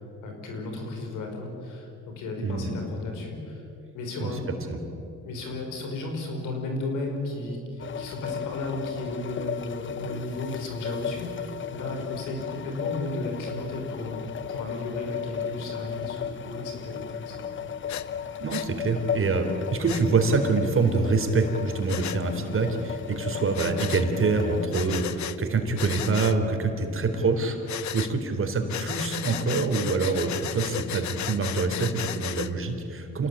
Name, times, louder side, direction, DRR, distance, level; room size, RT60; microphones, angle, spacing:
voice 1, 0.2-3.6 3.9-4.5 5.2-14.2 14.5-17.6 26.8-27.0, left 2 dB, 90° left, 2 dB, 5.5 m, -34 dB
voice 2, 2.4-2.7 4.2-4.3 4.7-4.8 18.4-27.6 27.9-33.3, right 3 dB, 45° right, 5 dB, 3.7 m, -25 dB
sound 1, 7.8-24.7, left 8 dB, 40° left, 0.9 m, -35 dB
Breathing, 17.9-18.1 18.5-18.7 19.9-20.0 21.9-22.2 23.5-24.1 24.7-25.4 25.8-26.4 27.7-28.1 28.7-32.5, left 12 dB, 70° left, 1.0 m, -34 dB
26.5 x 18.5 x 8.9 m, 2.8 s
cardioid pair, 90°, 30 cm